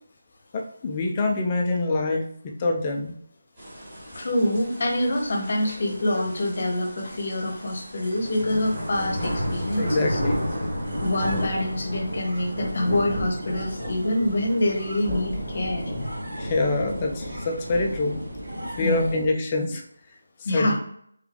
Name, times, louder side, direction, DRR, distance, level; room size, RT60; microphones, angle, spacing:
voice 1, 0.5-3.1 9.8-10.4 16.4-18.2 18.8-19.8 20.5-20.7, left 2 dB, 15° left, 2 dB, 0.4 m, -25 dB
sound 1, 3.6-19.3, equal, 20° right, 1.3 m, -33 dB
voice 2, 4.1-10.2 11.0-15.9 18.8-19.2 20.4-20.7, left 1 dB, 40° left, 2 dB, 0.9 m, -26 dB
sound 2, 9.0-19.2, right 1 dB, 60° right, 1.5 m, -41 dB
3.6 x 3.5 x 3.3 m, 0.66 s
figure-of-eight pair, 175°, 0 cm